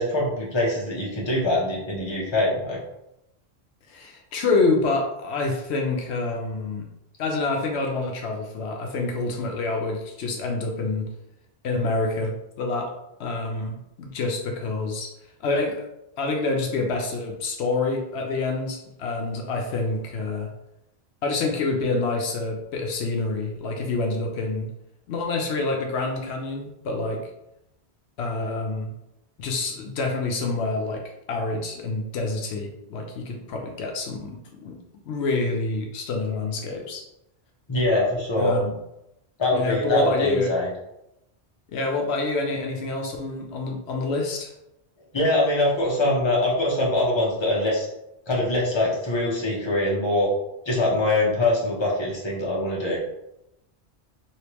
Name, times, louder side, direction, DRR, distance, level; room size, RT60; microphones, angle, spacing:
voice 1, 0.0-2.8 37.7-38.5 39.4-40.7 45.1-47.9 48.3-50.3 50.7-53.0, left 1 dB, 25° left, -4 dB, 0.9 m, -23 dB
voice 2, 3.9-6.9 7.2-11.1 11.6-12.9 13.2-15.1 15.4-15.9 16.2-20.5 21.2-24.7 25.1-27.2 28.2-28.9 29.4-31.0 31.3-34.8 35.1-37.0 38.4-38.8 39.5-40.5 41.7-44.5, left 3 dB, 80° left, 1 dB, 0.9 m, -27 dB
3.3 x 3.0 x 2.9 m, 0.85 s
omnidirectional pair, 1.1 m